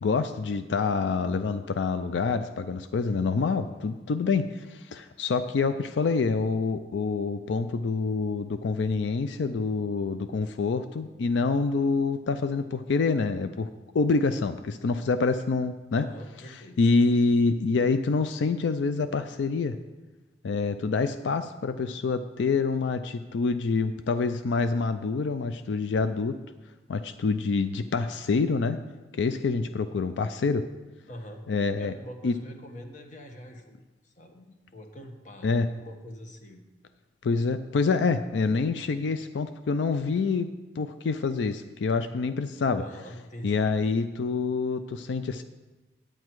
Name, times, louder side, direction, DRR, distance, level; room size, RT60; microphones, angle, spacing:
voice 1, 0.0-13.7 13.9-16.0 16.8-19.8 20.4-26.4 26.9-28.8 29.1-30.7 31.5-31.9 32.2-32.3 35.4-35.7 37.2-40.5 40.8-42.8 43.4-45.4, left 4 dB, 90° left, 10 dB, 0.4 m, -26 dB
voice 2, 15.9-16.8 31.1-31.4 31.8-33.8 34.0-36.6 42.7-43.6, equal, 45° left, 4 dB, 1.1 m, -44 dB
9.5 x 9.0 x 4.6 m, 1.2 s
head